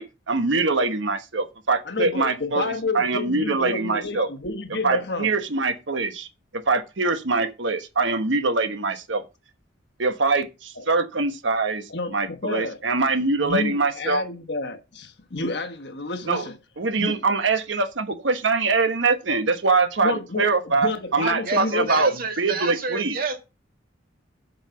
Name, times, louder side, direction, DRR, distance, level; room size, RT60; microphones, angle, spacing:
voice 1, 0.0-4.3 4.8-6.3 6.5-9.2 10.0-14.2 16.3-16.5 16.8-23.2, right 3 dB, 70° right, 1.2 m, -23 dB
voice 2, 1.9-5.3 10.8-10.9 11.9-12.8 13.4-16.6 17.0-17.2 20.0-22.0, left 3 dB, 60° left, 1.3 m, -30 dB
voice 3, 21.4-23.4, right 4 dB, 50° right, 1.8 m, -29 dB
8.0 x 5.7 x 5.7 m
head